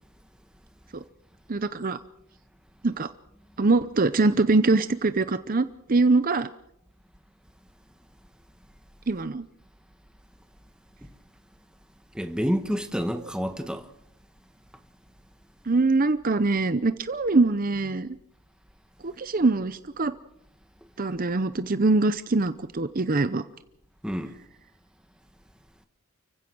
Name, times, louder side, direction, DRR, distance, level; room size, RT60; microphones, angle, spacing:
voice 1, 1.5-2.0 2.8-3.1 3.6-6.5 9.1-9.4 15.7-18.2 19.0-20.1 21.0-23.4, right 3 dB, 40° right, 0.7 m, -23 dB
voice 2, 12.1-13.9 24.0-24.4, equal, 5° right, 1.3 m, -28 dB
29.5 x 16.0 x 6.2 m
head